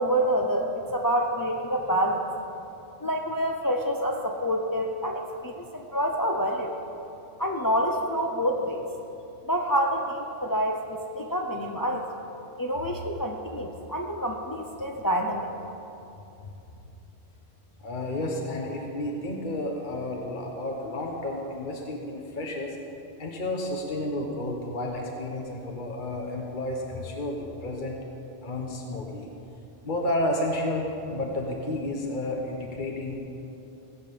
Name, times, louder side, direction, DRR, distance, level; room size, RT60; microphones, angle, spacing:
voice 1, 0.0-2.2 3.0-6.7 7.4-8.8 9.5-12.1 12.6-15.5, equal, 20° left, 1 dB, 0.8 m, -27 dB
voice 2, 17.8-22.8 23.2-28.0 28.4-29.3 29.8-33.1, left 1 dB, 45° left, 0 dB, 1.3 m, -31 dB
18.0 x 7.8 x 7.0 m, 2.8 s
omnidirectional pair, 1.1 m